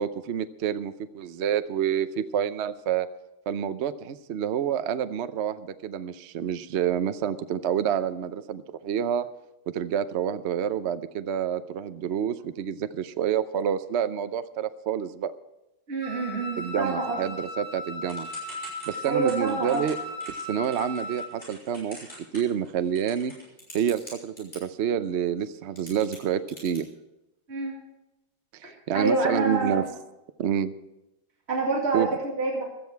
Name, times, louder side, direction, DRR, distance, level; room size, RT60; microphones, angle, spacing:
voice 1, 0.0-3.1 3.5-9.3 9.7-15.3 16.6-18.3 18.9-20.0 20.3-22.0 22.3-23.3 23.7-26.9 28.5-29.8 30.4-30.7 31.9-32.1, right 9 dB, 65° right, 12 dB, 0.6 m, -28 dB
voice 2, 15.9-17.2 19.1-19.8 27.5-27.7 28.6-29.9 31.5-32.6, right 3 dB, 35° right, -2 dB, 2.6 m, -27 dB
Wind instrument woodwind instrument, 16.0-21.4, left 1 dB, 5° right, 1.7 m, -37 dB
Typing / Telephone, 18.1-24.6 25.4-25.5 25.8-26.8, equal, 25° left, 6.6 m, -45 dB
17.0 x 13.0 x 4.6 m, 0.93 s
omnidirectional pair, 2.1 m